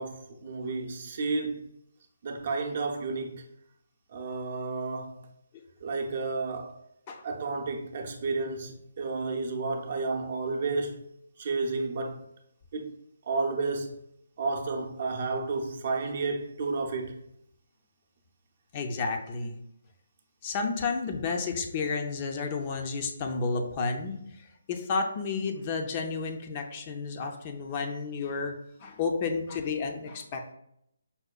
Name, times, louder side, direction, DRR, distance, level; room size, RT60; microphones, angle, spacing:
voice 1, 0.0-1.7 2.2-3.5 4.1-5.3 5.8-6.8 7.2-11.0 11.4-12.3 12.7-12.9 13.2-13.9 14.4-17.2, right 3 dB, 50° right, 0.6 m, -31 dB
voice 2, 18.7-19.6 20.4-28.5 28.8-30.5, left 4 dB, 30° left, 0.4 m, -31 dB
5.3 x 2.2 x 2.3 m
figure-of-eight pair, 150°, 0 cm